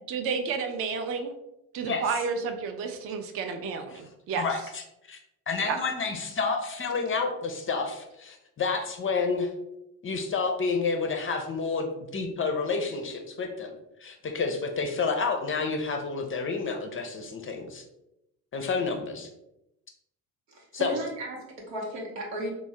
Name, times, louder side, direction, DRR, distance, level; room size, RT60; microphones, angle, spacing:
voice 1, 0.1-1.3 1.7-4.4 5.6-5.8, right 5 dB, 30° right, 5 dB, 0.4 m, -31 dB
voice 2, 4.4-5.2 5.5-9.5 10.0-11.9 12.1-13.7 14.0-17.8 18.5-19.3 20.7-21.0, left 4 dB, 25° left, 4 dB, 0.5 m, -29 dB
voice 3, 20.5-22.5, right 1 dB, 80° right, -1 dB, 0.9 m, -35 dB
3.4 x 2.1 x 3.2 m, 0.87 s
hypercardioid pair, 50°, 49 cm